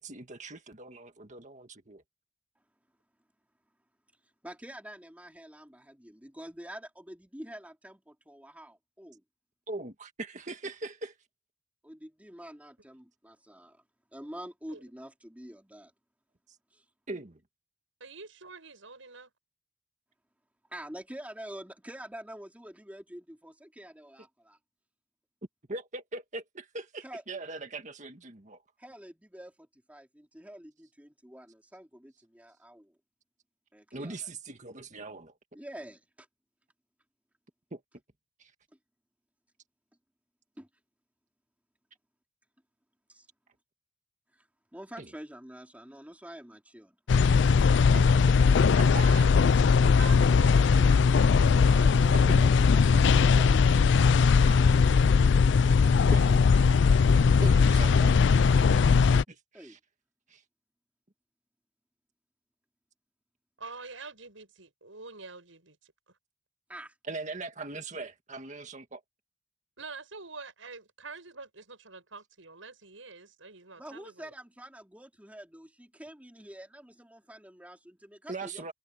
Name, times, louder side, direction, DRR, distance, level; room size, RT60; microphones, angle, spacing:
voice 1, 0.0-2.0 9.7-11.1 17.1-17.4 25.7-28.6 33.9-35.3 37.7-37.8 38.4-38.5 45.0-45.1 47.9-48.4 48.7-49.0 52.2-52.5 56.1-56.3 57.4-59.0 59.3-59.8 60.3-60.4 67.1-69.0 78.3-78.7, right 3 dB, 40° right, 1.9 m, -40 dB
voice 2, 4.4-9.2 11.8-13.8 14.1-15.9 16.7-16.8 20.7-24.6 27.0-27.2 28.8-32.9 33.7-34.1 35.5-36.3 40.6-40.7 43.1-43.3 44.3-44.5 44.7-47.0 51.6-53.9 55.8-56.5 59.5-59.8 66.7-67.0 73.8-78.7, right 1 dB, 10° right, 3.6 m, -47 dB
voice 3, 18.0-19.3 48.8-51.1 54.3-55.1 57.3-58.1 63.6-66.2 68.0-68.1 69.8-74.3, right 4 dB, 80° right, 7.5 m, -46 dB
sound 1, 47.1-59.2, left 5 dB, 65° left, 0.4 m, -20 dB
head